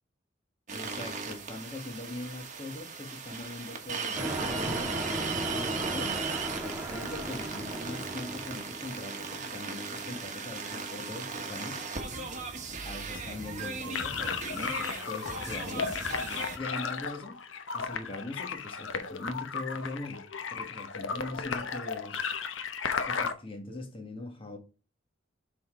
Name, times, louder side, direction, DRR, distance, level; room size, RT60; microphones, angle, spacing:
voice 1, 0.7-6.1 6.6-12.4 12.8-15.9 16.5-17.4 17.7-20.2 20.5-22.3 23.0-24.6, left 2 dB, 30° left, 1.6 m, -41 dB
sound 1, 0.7-16.6, right 4 dB, 40° right, 1.3 m, -37 dB
sound 2, 4.2-8.9, right 1 dB, 10° right, 1.9 m, -36 dB
sound 3, 13.9-23.3, left 5 dB, 85° left, 0.9 m, -35 dB
7.5 x 3.9 x 5.0 m
head